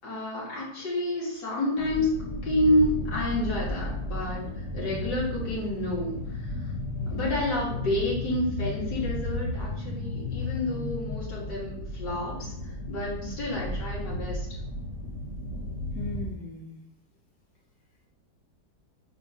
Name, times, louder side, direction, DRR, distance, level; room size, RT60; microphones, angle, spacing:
voice 1, 0.0-4.4 4.7-6.5 7.1-12.5 12.9-14.5, left 1 dB, 80° left, -6 dB, 2.5 m, -29 dB
sound 1, 1.8-16.2, left 2 dB, 25° left, 1.3 m, -34 dB
voice 2, 7.0-7.4 13.2-13.6 15.9-16.8, left 2 dB, 60° left, -4 dB, 2.3 m, -39 dB
4.6 x 4.4 x 5.4 m, 0.76 s
omnidirectional pair, 1.8 m